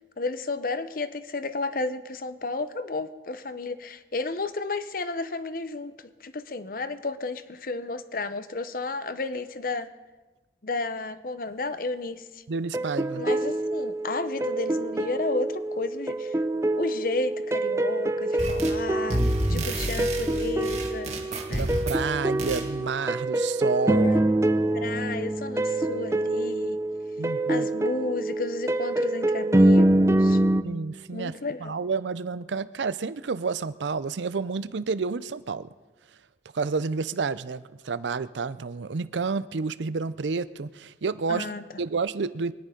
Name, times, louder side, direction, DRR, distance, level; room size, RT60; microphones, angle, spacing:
voice 1, 0.2-5.9 6.2-9.9 10.6-12.4 13.1-16.4 16.8-19.2 19.5-21.1 21.5-21.7 24.0-24.2 24.7-26.8 27.5-30.4 31.1-31.8 41.3-41.6, left 3 dB, 50° left, 12 dB, 0.8 m, -32 dB
voice 2, 12.5-13.3 19.5-19.7 21.5-24.2 27.2-27.7 30.6-35.7 36.5-41.5 41.8-42.5, right 4 dB, 85° right, 16 dB, 0.5 m, -30 dB
sound 1, 12.7-30.6, right 1 dB, 15° right, 0.5 m, -25 dB
sound 2, 18.4-18.8 19.1-22.0 22.4-22.7, right 1 dB, 40° right, 1.7 m, -29 dB
24.0 x 10.0 x 5.2 m, 1.2 s
head